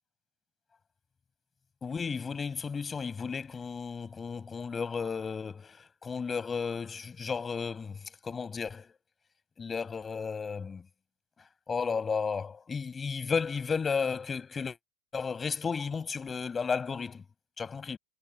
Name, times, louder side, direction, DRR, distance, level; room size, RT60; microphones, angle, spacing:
voice 1, 1.8-8.9 9.6-10.8 11.7-14.8 15.1-17.2 17.6-18.0, left 5 dB, 15° left, 5.9 m, -33 dB
supercardioid pair, 170°, 0 cm